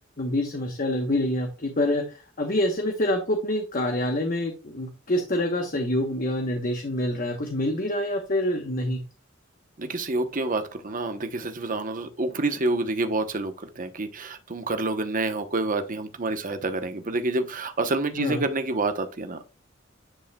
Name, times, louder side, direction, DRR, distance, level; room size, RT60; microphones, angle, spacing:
voice 1, 0.2-9.0 18.2-18.4, left 1 dB, 45° left, 1.0 m, -26 dB
voice 2, 9.8-19.5, right 2 dB, 45° right, 0.9 m, -28 dB
10.0 x 5.5 x 2.3 m
head